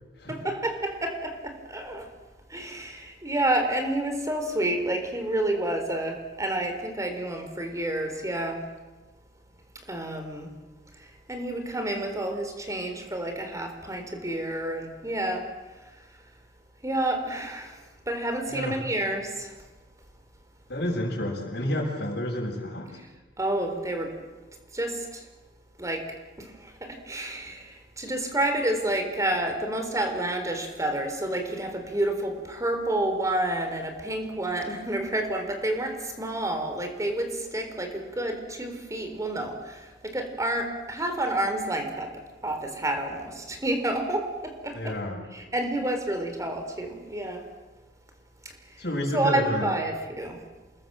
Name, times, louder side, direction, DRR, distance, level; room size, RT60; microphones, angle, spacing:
voice 1, 0.3-2.1 2.5-8.6 9.9-10.5 11.0-15.5 16.8-17.8 18.1-19.5 23.4-24.2 24.7-25.3 25.8-26.1 26.4-44.9 45.3-47.4 48.5-48.8 49.1-50.4, right 1 dB, 20° right, 5 dB, 4.0 m, -29 dB
voice 2, 20.7-23.0 44.7-45.2 48.8-49.7, left 1 dB, 65° left, -4 dB, 7.1 m, -30 dB
28.0 x 20.5 x 7.7 m, 1.2 s
head